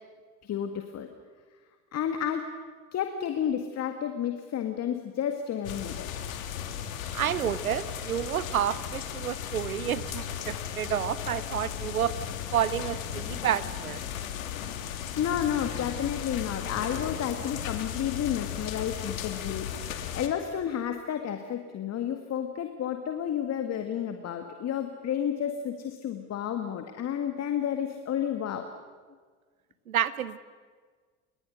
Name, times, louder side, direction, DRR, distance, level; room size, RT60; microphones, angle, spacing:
voice 1, 0.4-1.1 1.9-2.5 2.9-6.1 15.2-28.7, left 9 dB, 40° left, 6 dB, 2.0 m, -31 dB
sound 1, 5.6-20.3, left 9 dB, 70° left, 2.7 m, -36 dB
voice 2, 7.1-12.1 12.5-14.0 29.9-30.4, right 10 dB, 85° right, 16 dB, 1.0 m, -30 dB
29.0 x 23.5 x 6.5 m, 1.5 s
hypercardioid pair, 75°, 41 cm